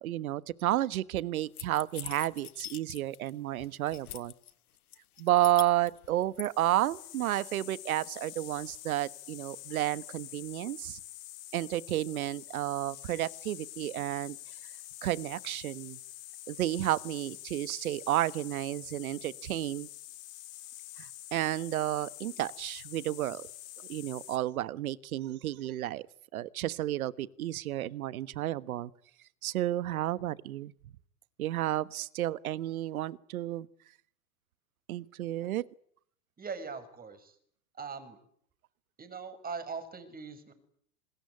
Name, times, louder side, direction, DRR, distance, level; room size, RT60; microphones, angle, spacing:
voice 1, 0.0-4.3 5.2-11.0 11.5-14.4 15.0-16.0 16.5-19.9 21.0-23.5 23.9-26.1 26.3-28.9 29.4-30.7 31.4-33.7 34.9-35.6, right 14 dB, 70° right, 1.4 m, -31 dB
sound 1, 1.6-3.3 3.6-4.5 4.9-6.5, left 12 dB, 80° left, 1.2 m, -43 dB
sound 2, 6.4-24.4, left 15 dB, 60° left, 4.5 m, -47 dB
voice 2, 36.4-37.4 37.8-38.2 39.0-40.5, right 5 dB, 20° right, 6.1 m, -41 dB
27.0 x 21.0 x 9.9 m
hypercardioid pair, 100°, 44 cm